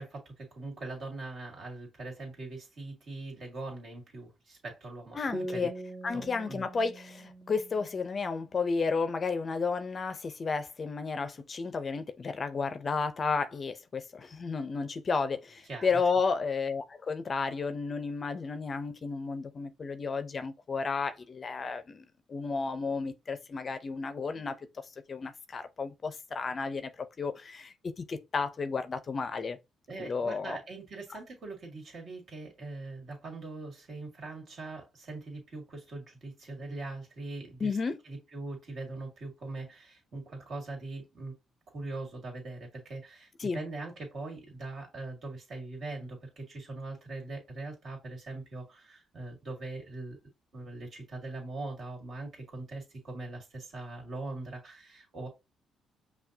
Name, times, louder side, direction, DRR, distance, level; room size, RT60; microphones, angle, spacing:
voice 1, 0.0-5.2 5.5-5.7 6.1-6.7 15.7-15.9 29.9-37.8 38.0-41.3 41.7-50.2 50.5-55.3, right 2 dB, 60° right, 2.1 m, -41 dB
voice 2, 5.2-5.7 6.0-24.6 25.1-29.6 30.0-30.6 37.6-38.0 43.4-43.6, left 4 dB, 40° left, 0.5 m, -32 dB
sound 1, 5.3-8.8, right 1 dB, 25° right, 0.5 m, -43 dB
5.6 x 2.3 x 2.7 m
cardioid pair, 90°, 0 cm